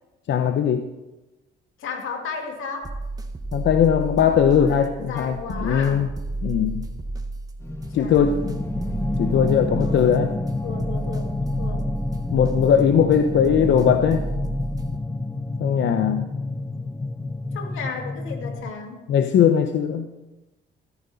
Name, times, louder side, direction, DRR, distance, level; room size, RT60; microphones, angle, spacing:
voice 1, 0.3-0.9 3.5-6.1 6.4-6.8 7.9-8.5 9.2-10.3 12.3-14.2 15.6-16.3 19.1-20.2, left 8 dB, 65° left, 7 dB, 0.9 m, -19 dB
voice 2, 1.8-3.0 4.5-6.1 8.0-9.3 9.8-11.9 17.5-19.0, left 5 dB, 85° left, 3 dB, 2.3 m, -35 dB
sound 1, 2.8-15.0, right 2 dB, 20° right, 1.4 m, -32 dB
sound 2, 7.6-18.7, left 2 dB, 10° left, 0.8 m, -29 dB
14.0 x 14.0 x 4.2 m, 1.1 s
cardioid pair, 90°, 20 cm